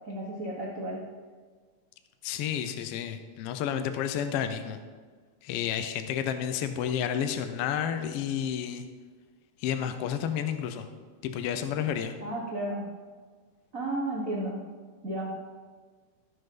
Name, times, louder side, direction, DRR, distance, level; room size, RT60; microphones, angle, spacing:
voice 1, 0.1-1.0 12.2-12.9 13.7-14.6 15.0-15.3, right 1 dB, 60° right, -5 dB, 0.8 m, -33 dB
voice 2, 2.2-4.8 5.4-8.9 9.6-10.9 11.2-12.2, left 9 dB, 90° left, 8 dB, 1.3 m, -31 dB
14.5 x 6.6 x 3.8 m, 1.5 s
omnidirectional pair, 3.6 m